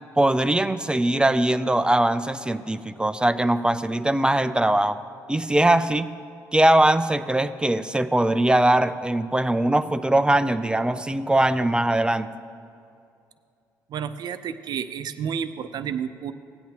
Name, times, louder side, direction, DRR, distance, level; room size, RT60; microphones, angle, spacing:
voice 1, 0.2-5.0 5.3-6.1 6.5-12.3, right 1 dB, 10° right, 11 dB, 0.4 m, -21 dB
voice 2, 13.9-16.3, right 7 dB, 60° right, 11 dB, 0.6 m, -30 dB
16.5 x 9.0 x 2.9 m, 2.5 s
supercardioid pair, 65°, 8 cm